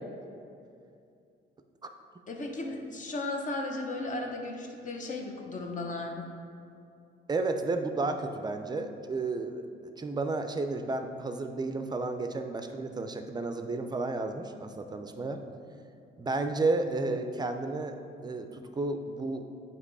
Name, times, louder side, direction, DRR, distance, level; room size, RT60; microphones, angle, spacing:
voice 1, 2.3-6.3, left 2 dB, 40° left, 2 dB, 0.9 m, -35 dB
voice 2, 7.3-15.4 16.2-19.4, right 3 dB, 20° right, 7 dB, 0.5 m, -32 dB
8.2 x 3.0 x 4.7 m, 2.5 s
cardioid pair, 90°, 20 cm